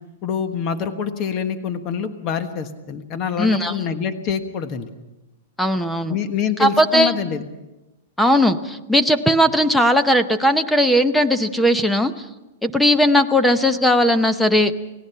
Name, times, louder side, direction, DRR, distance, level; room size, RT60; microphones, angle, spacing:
voice 1, 0.2-4.9 6.1-7.4, left 7 dB, 30° left, 8 dB, 1.3 m, -25 dB
voice 2, 3.4-3.7 5.6-6.2 6.6-7.2 8.2-12.1 12.6-14.7, equal, 5° left, 10 dB, 0.8 m, -17 dB
29.5 x 17.5 x 5.7 m, 1.0 s
supercardioid pair, 160°, 0 cm